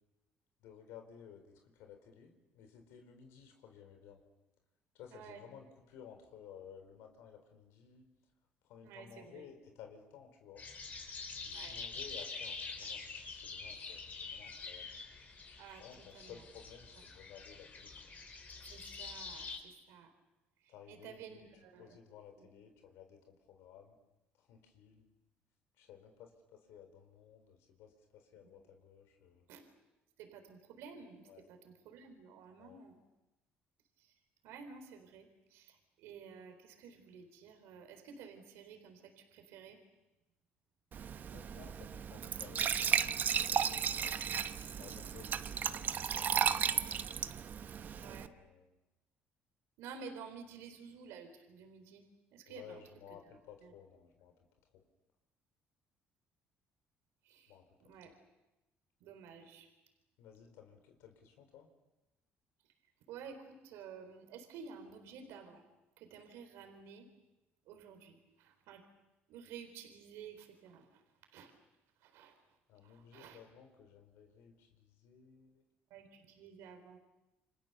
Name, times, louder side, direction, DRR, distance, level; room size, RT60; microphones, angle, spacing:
voice 1, 0.6-4.2 4.9-8.1 8.6-10.6 11.4-15.0 15.8-17.9 20.7-21.5 21.8-24.0 24.4-25.1 25.8-29.5 31.3-31.5 32.6-32.8 41.3-44.3 44.8-47.2 47.9-48.7 52.5-54.3 57.5-57.7 60.2-61.7 72.7-75.6, left 8 dB, 90° left, 5 dB, 4.2 m, -56 dB
voice 2, 5.1-5.4 8.8-9.5 11.5-11.8 15.6-15.8 16.1-16.4 18.6-20.1 20.6-22.0 22.4-22.5 28.4-28.5 29.5-29.6 30.2-33.0 34.0-34.2 34.4-39.8 48.0-48.3 49.8-52.1 52.3-52.8 53.6-53.7 57.2-57.5 57.8-58.1 59.0-59.7 63.1-65.7 66.0-67.1 67.7-68.8 69.3-71.0 71.3-71.5 72.0-72.3 72.8-73.4 75.9-77.0, right 6 dB, 90° right, 6 dB, 4.0 m, -52 dB
sound 1, 10.6-19.6, left 4 dB, 40° left, 4.5 m, -46 dB
Glass / Trickle dribble / Fill (with liquid), 40.9-48.3, right 7 dB, 45° right, 1.0 m, -34 dB
29.0 x 26.0 x 6.8 m, 0.99 s
cardioid pair, 115°, 4 cm